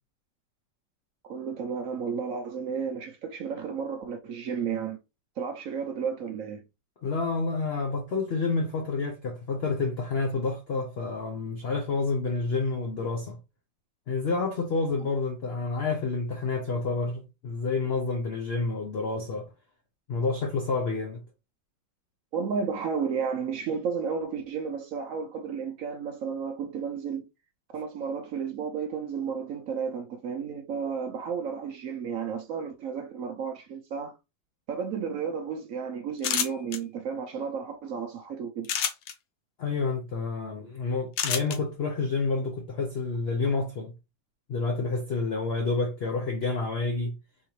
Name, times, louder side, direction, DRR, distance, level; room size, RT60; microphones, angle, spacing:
voice 1, 1.2-5.0 5.4-6.6 22.3-27.2 27.7-34.2 34.7-38.7, right 6 dB, 65° right, 0.8 m, -32 dB
voice 2, 7.0-13.4 14.1-19.5 20.1-21.2 39.6-43.9 44.5-47.1, left 3 dB, 55° left, 0.7 m, -29 dB
sound 1, 36.2-36.8 38.6-39.1 41.2-41.6, left 8 dB, 75° left, 1.4 m, -27 dB
4.7 x 3.6 x 3.0 m
omnidirectional pair, 2.0 m